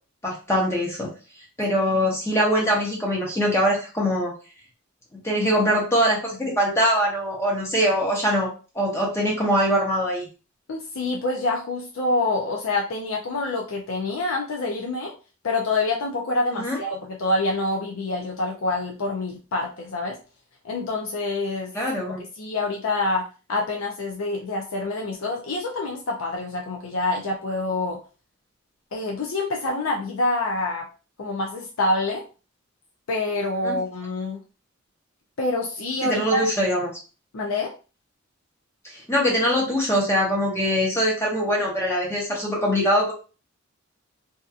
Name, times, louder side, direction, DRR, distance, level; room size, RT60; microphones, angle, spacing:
voice 1, 0.2-1.1 1.6-4.3 5.2-8.5 8.7-10.3 16.5-16.8 21.7-22.2 33.6-33.8 36.0-36.9 38.8-43.1, equal, 15° left, -2 dB, 0.7 m, -22 dB
voice 2, 10.7-15.1 15.4-20.2 20.6-21.7 22.4-23.2 23.5-28.0 28.9-30.9 31.2-32.2 33.1-34.4 35.4-36.4 37.3-37.7, left 2 dB, 80° left, 0 dB, 0.5 m, -26 dB
2.7 x 2.4 x 2.3 m, 0.34 s
head